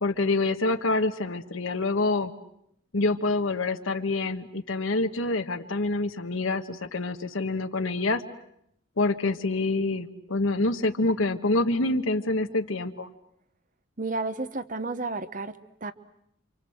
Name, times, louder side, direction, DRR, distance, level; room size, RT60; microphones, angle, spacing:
voice 1, 0.0-2.3 2.9-8.2 9.0-13.1, left 2 dB, 85° left, 5 dB, 1.3 m, -26 dB
voice 2, 14.0-15.9, right 3 dB, 40° right, 13 dB, 1.1 m, -32 dB
29.0 x 26.0 x 7.9 m, 0.75 s
head